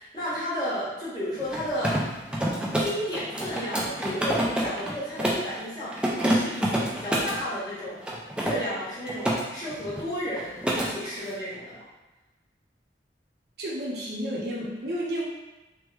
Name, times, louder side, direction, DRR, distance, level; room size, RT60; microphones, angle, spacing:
voice 1, 0.0-2.0 2.8-8.0 8.4-11.8, equal, 25° left, -10 dB, 1.1 m, -33 dB
Mechanisms, 1.4-5.5 5.9-7.4 8.0-9.4 9.7-10.0 10.3-10.9, right 1 dB, 5° right, 0.3 m, -27 dB
voice 2, 13.6-15.2, equal, 65° right, -4 dB, 0.7 m, -31 dB
3.0 x 2.1 x 3.2 m, 1.1 s
head